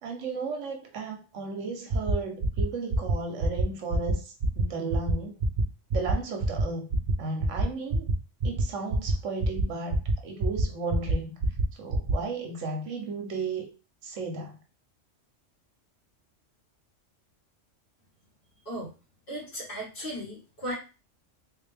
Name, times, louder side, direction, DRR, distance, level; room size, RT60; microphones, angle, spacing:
voice 1, 0.0-4.2 4.6-5.3 5.9-6.9 7.2-8.1 8.4-11.4 11.8-13.7 14.0-14.5, right 4 dB, 75° right, 1.1 m, -34 dB
sound 1, 1.9-2.1 2.4-2.6 2.9-3.1 3.4-3.6 3.9-4.1 4.4-4.6 4.9-5.1 5.4-5.6 5.9-6.1 6.4-6.6 6.9-7.1 7.4-7.6 7.9-8.1 8.4-8.6 8.9-9.1 9.4-9.6 9.9-10.1 10.4-10.6 10.9-11.1 11.4-11.6 11.9-12.1, right 4 dB, 55° right, 0.9 m, -26 dB
voice 2, 19.3-20.7, equal, 45° left, 2.0 m, -36 dB
3.6 x 2.7 x 3.3 m
omnidirectional pair, 1.3 m